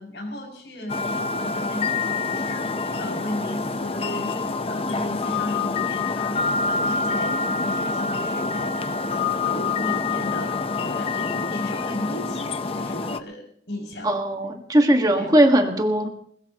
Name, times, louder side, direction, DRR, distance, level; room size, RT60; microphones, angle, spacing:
voice 1, 0.0-2.7 3.0-14.2 14.9-15.3, left 1 dB, 75° left, 2 dB, 6.2 m, -35 dB
sound 1, 0.9-13.2, left 4 dB, 30° left, 0.7 m, -26 dB
voice 2, 14.0-16.1, right 1 dB, 20° right, 4 dB, 1.5 m, -19 dB
21.5 x 21.0 x 2.9 m, 0.63 s
head